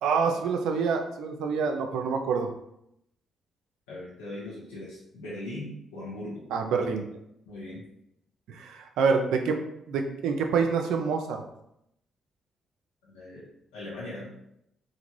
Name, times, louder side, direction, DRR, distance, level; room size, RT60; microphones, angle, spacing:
voice 1, 0.0-2.5 6.5-7.0 8.5-9.6 9.9-11.4, right 5 dB, 75° right, 4 dB, 0.3 m, -26 dB
voice 2, 3.9-6.4 7.4-7.8 13.0-13.5 13.7-14.3, left 1 dB, 85° left, -9 dB, 1.0 m, -39 dB
2.8 x 2.6 x 3.0 m, 0.79 s
hypercardioid pair, 45°, 0 cm